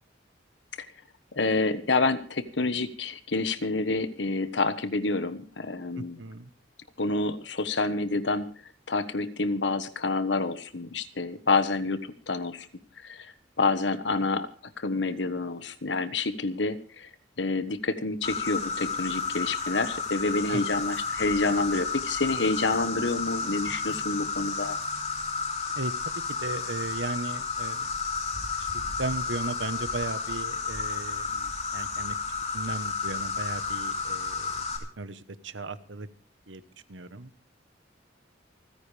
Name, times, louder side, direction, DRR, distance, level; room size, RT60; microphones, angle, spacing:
voice 1, 1.3-6.2 7.0-8.5 8.9-12.7 13.0-13.3 13.6-14.5 14.8-17.1 17.4-24.8, left 3 dB, 65° left, 12 dB, 1.3 m, -28 dB
voice 2, 6.0-6.5 20.5-20.6 25.7-25.9 26.4-27.9 28.6-32.2 32.5-34.6 35.0-36.1 36.5-36.6 36.9-37.3, right 2 dB, 80° right, 13 dB, 1.2 m, -36 dB
Insect, 18.2-34.8, left 4 dB, 35° left, 3.3 m, -32 dB
29.0 x 10.0 x 3.4 m, 0.41 s
head